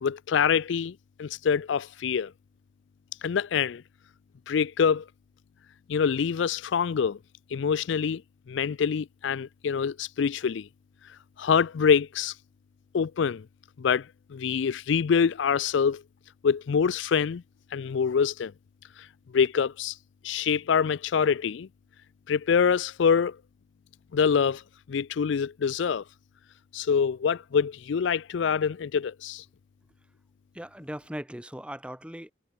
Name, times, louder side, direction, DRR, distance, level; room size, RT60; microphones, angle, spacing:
voice 1, 0.0-2.3 3.2-3.8 4.5-5.1 5.9-7.2 7.5-8.2 8.5-10.7 11.4-12.3 12.9-13.4 13.8-14.1 14.3-16.0 16.4-17.4 17.7-18.5 19.0-19.1 19.3-20.0 20.2-21.7 22.3-23.4 24.1-24.6 24.9-26.0 26.7-29.4, left 6 dB, 70° left, 0.4 m, -25 dB
voice 2, 30.5-32.3, equal, 5° right, 1.8 m, -39 dB
head